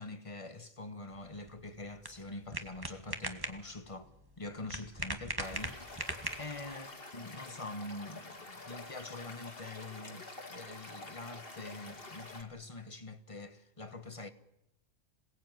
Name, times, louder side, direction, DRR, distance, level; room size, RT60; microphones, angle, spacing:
voice 1, 0.0-4.1 4.4-5.8 6.4-6.9 7.1-14.3, left 2 dB, 25° left, 1.5 m, -45 dB
sound 1, 1.1-6.7, right 1 dB, 20° right, 1.7 m, -41 dB
Stream / Liquid, 5.4-12.4, left 2 dB, 50° left, 2.5 m, -48 dB
27.0 x 18.5 x 9.3 m
omnidirectional pair, 1.3 m